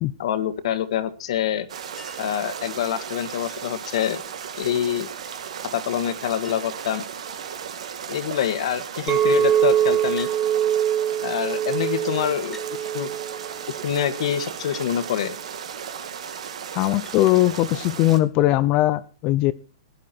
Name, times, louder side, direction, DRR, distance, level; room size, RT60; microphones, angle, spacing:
voice 1, 0.2-1.7 2.2-4.2 4.6-5.1 5.7-7.0 8.1-10.3 11.2-12.6 12.9-13.1 13.8-15.4, left 10 dB, 65° left, 11 dB, 1.6 m, -26 dB
sound 1, 1.7-18.2, right 8 dB, 75° right, 2.0 m, -35 dB
Chink clink, 2.0-2.4 4.0-4.4 5.8-5.9 6.1-6.2 6.4-6.9 7.7-8.0 10.2-10.4 11.5-11.6 12.5-12.8 14.7-14.9 17.1-17.2 18.6-18.7, left 2 dB, 5° left, 1.7 m, -46 dB
Chink clink 2, 9.1-14.3, right 10 dB, 20° right, 0.9 m, -23 dB
voice 2, 16.7-19.5, left 15 dB, 35° left, 14 dB, 0.7 m, -20 dB
17.0 x 10.5 x 4.5 m, 0.37 s
hypercardioid pair, 140°, 3 cm